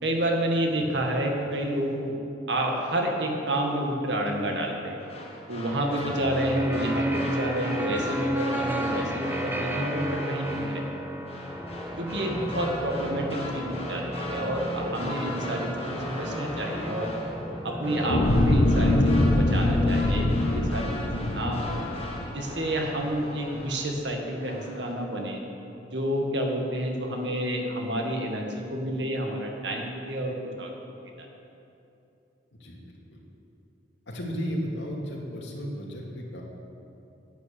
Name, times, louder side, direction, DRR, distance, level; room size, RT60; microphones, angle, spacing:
voice 1, 0.0-2.1 2.5-5.0 5.5-11.0 12.0-17.1 17.6-21.8 22.3-25.4 25.9-30.7 31.0-31.3, right 1 dB, 75° right, 1 dB, 1.9 m, -29 dB
sound 1, 5.0-24.1 24.4-24.9, left 1 dB, 35° left, 1.6 m, -39 dB
sound 2, 5.7-22.2, equal, 10° right, 0.7 m, -33 dB
voice 2, 5.9-6.2 12.3-12.6 32.5-33.2 34.1-36.4, equal, 85° left, -2 dB, 2.4 m, -35 dB
sound 3, 18.1-22.6 23.1-23.2, left 1 dB, 70° left, 1.0 m, -23 dB
10.5 x 8.8 x 8.3 m, 2.8 s
head